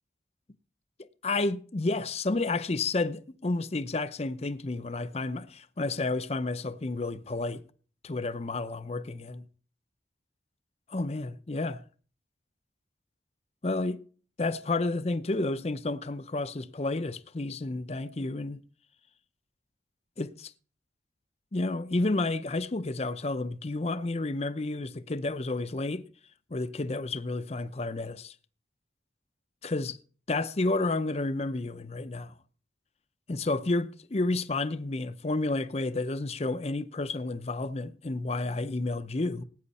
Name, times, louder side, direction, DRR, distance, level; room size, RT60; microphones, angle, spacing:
voice 1, 1.2-7.6 8.0-9.4 10.9-11.8 13.6-14.0 14.4-18.6 20.2-20.5 21.5-26.0 26.5-28.3 29.6-30.0 30.3-32.3 33.3-39.4, left 2 dB, 35° left, 0.6 m, -31 dB
18.0 x 9.3 x 4.2 m
head